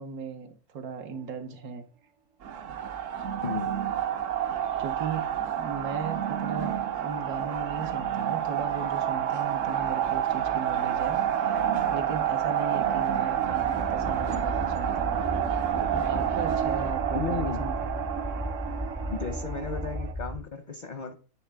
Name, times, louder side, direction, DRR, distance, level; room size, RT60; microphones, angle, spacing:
voice 1, 0.0-1.8 4.8-11.5 11.9-15.2 15.9-18.0, right 5 dB, 85° right, 1.4 m, -37 dB
sound 1, 2.4-20.1, right 9 dB, 65° right, 1.0 m, -29 dB
sound 2, 13.4-20.4, equal, 20° right, 0.5 m, -35 dB
voice 2, 17.1-17.7 19.1-21.1, left 4 dB, 50° left, 0.5 m, -34 dB
9.1 x 3.3 x 3.3 m
omnidirectional pair, 1.5 m